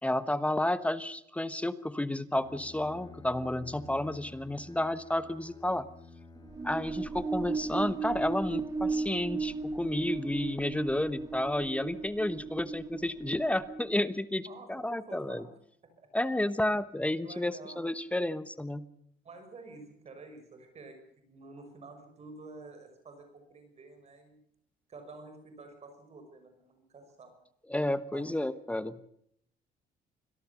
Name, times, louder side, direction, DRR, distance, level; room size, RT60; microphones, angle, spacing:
voice 1, 0.0-5.9 6.6-15.4 16.1-18.9 27.7-29.0, left 1 dB, 10° left, 14 dB, 1.1 m, -31 dB
Bowed string instrument, 2.3-8.2, left 3 dB, 25° left, 2.4 m, -52 dB
sound 1, 6.4-14.1, right 4 dB, 20° right, 2.9 m, -35 dB
voice 2, 15.1-15.5 17.2-17.8 19.2-24.4 24.9-27.3 28.1-28.4, right 3 dB, 40° right, 7 dB, 5.8 m, -49 dB
25.0 x 17.5 x 7.0 m, 0.70 s
cardioid pair, 110°, 17 cm